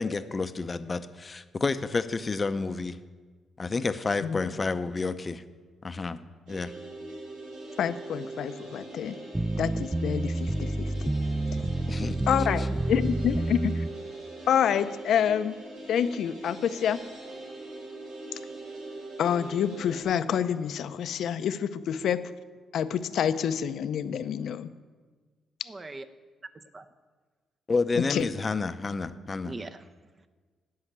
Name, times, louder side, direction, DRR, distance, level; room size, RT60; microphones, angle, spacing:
voice 1, 0.0-3.0 3.6-5.4 5.8-6.2 6.5-6.7 11.9-12.1 27.7-29.5, left 4 dB, 30° left, 11 dB, 0.7 m, -30 dB
sound 1, 6.5-20.0, right 2 dB, 90° right, 4.4 m, -42 dB
voice 2, 7.8-9.2 9.6-10.9 12.3-13.9 14.5-15.5 15.9-17.0 19.2-22.3 22.7-24.7 28.0-28.3, left 8 dB, 70° left, 12 dB, 0.6 m, -27 dB
sound 2, 9.3-13.9, right 2 dB, 10° right, 0.3 m, -29 dB
voice 3, 25.7-26.1 26.5-26.9 29.4-30.3, right 2 dB, 30° right, 10 dB, 0.8 m, -42 dB
13.0 x 5.7 x 8.7 m, 1.4 s
cardioid pair, 90°, 0 cm